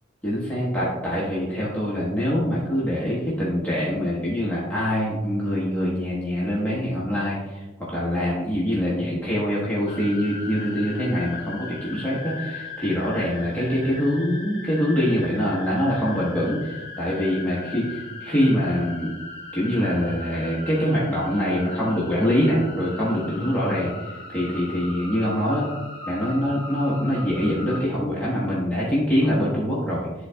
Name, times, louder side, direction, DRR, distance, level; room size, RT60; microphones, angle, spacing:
voice 1, 0.2-19.1 19.5-25.6 26.1-30.3, equal, 10° left, -8 dB, 1.1 m, -24 dB
sound 1, 9.9-27.8, left 3 dB, 30° left, 1.7 m, -38 dB
10.5 x 3.9 x 2.3 m, 1.1 s
head